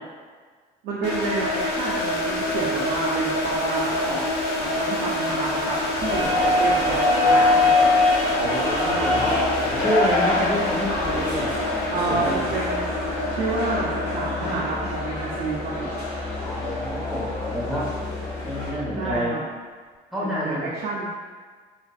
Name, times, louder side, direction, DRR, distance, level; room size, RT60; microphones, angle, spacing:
voice 1, 0.8-4.3 4.6-7.9 11.9-12.8 13.3-16.0 19.0-19.4 20.2-21.0, right 3 dB, 70° right, -6 dB, 0.5 m, -29 dB
sound 1, 1.0-17.9, left 1 dB, 85° left, 0.7 m, -28 dB
sound 2, 6.0-18.7, left 2 dB, 55° left, 1.1 m, -25 dB
voice 2, 6.3-6.8 8.3-11.5 11.9-12.5 16.4-17.9 18.4-19.4 20.1-20.7, left 1 dB, ahead, -8 dB, 1.0 m, -28 dB
Musical instrument, 8.9-19.2, left 2 dB, 30° left, 0.6 m, -36 dB
3.2 x 2.5 x 2.3 m, 1.5 s
cardioid pair, 110°, 17 cm